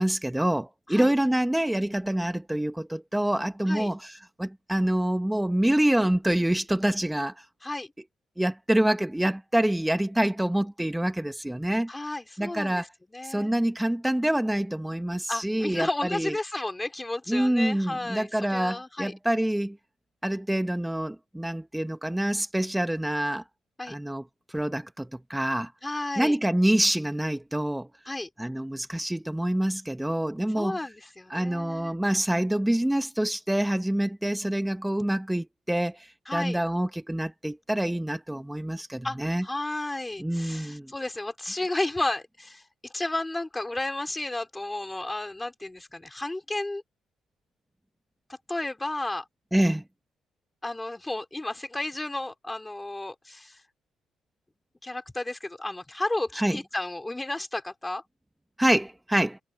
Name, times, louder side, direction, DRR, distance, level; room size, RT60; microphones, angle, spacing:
voice 1, 0.0-7.4 8.4-11.9 12.4-12.9 13.2-16.3 17.3-19.8 20.2-23.4 23.9-24.2 24.5-25.7 26.2-27.9 28.4-30.8 31.3-39.4 40.2-40.9 49.5-49.8 56.4-56.6 58.6-59.4, right 1 dB, 5° right, 1.3 m, -26 dB
voice 2, 11.9-13.5 15.3-19.1 23.8-24.0 25.8-26.4 28.1-28.3 30.5-32.0 36.3-36.6 39.0-42.6 42.9-46.8 48.5-49.2 50.6-53.6 54.8-58.0, left 2 dB, 15° left, 3.9 m, -32 dB
cardioid pair, 90°, 0 cm